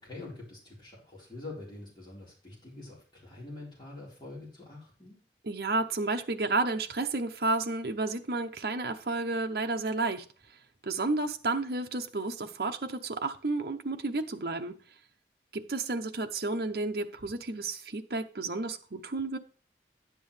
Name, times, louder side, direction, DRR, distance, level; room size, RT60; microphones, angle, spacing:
voice 1, 0.0-5.2, left 2 dB, 25° left, 4.2 m, -45 dB
voice 2, 5.4-10.2 10.8-14.7 15.5-19.4, right 3 dB, 60° right, 0.8 m, -31 dB
10.5 x 7.7 x 3.3 m
head